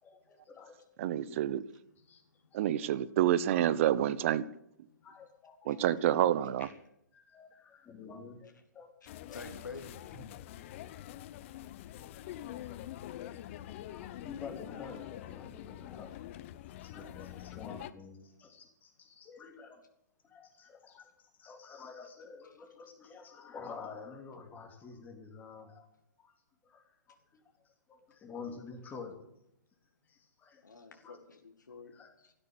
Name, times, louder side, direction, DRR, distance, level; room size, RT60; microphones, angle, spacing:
voice 1, 0.0-1.4 2.0-2.2 2.5-3.0 5.0-6.0 6.6-6.7 7.1-8.9 9.3-9.4 10.1-10.3 11.8-13.0 13.3-16.2 16.8-19.8 20.2-25.9 26.2-26.3 26.6-29.3 30.1-30.6 30.9-31.2 31.9-32.1, left 5 dB, 15° left, 4 dB, 3.0 m, -50 dB
voice 2, 1.0-1.6 2.5-4.4 5.7-6.7, right 11 dB, 45° right, 18 dB, 0.9 m, -28 dB
voice 3, 9.0-10.1 30.6-32.3, left 4 dB, 75° left, 5 dB, 2.2 m, -49 dB
sound 1, 9.1-17.9, left 13 dB, 40° left, 0.9 m, -45 dB
13.5 x 12.0 x 8.1 m, 0.77 s
figure-of-eight pair, 125°, 10 cm